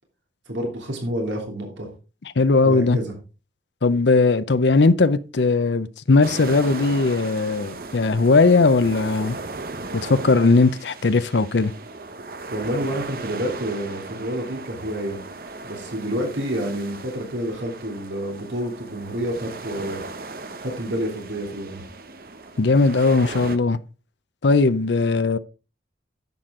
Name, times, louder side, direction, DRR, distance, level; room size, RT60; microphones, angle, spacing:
voice 1, 0.5-1.9 2.6-3.1 12.5-15.2 15.6-20.0 20.6-21.8, equal, 80° right, 3.0 m, -28 dB
voice 2, 2.4-3.0 3.8-9.4 9.9-11.7 22.6-23.8 24.4-25.4, left 3 dB, 75° left, 0.6 m, -18 dB
sound 1, 6.2-23.6, right 3 dB, 50° right, 0.9 m, -37 dB
11.0 x 7.7 x 3.7 m
head